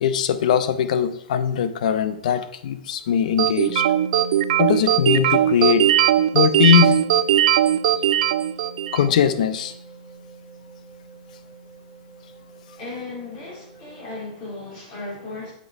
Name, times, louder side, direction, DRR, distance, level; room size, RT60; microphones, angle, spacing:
voice 1, 0.0-3.8 4.6-5.9 6.3-7.0 8.9-9.7, left 8 dB, 60° left, 11 dB, 0.7 m, -20 dB
sound 1, 3.4-9.1, right 11 dB, 60° right, 0.4 m, -19 dB
sound 2, 3.7-14.2, right 4 dB, 5° left, 2.9 m, -40 dB
voice 2, 12.8-15.5, left 3 dB, 30° left, -4 dB, 3.5 m, -35 dB
7.6 x 5.3 x 4.7 m, 0.68 s
hypercardioid pair, 160°, 4 cm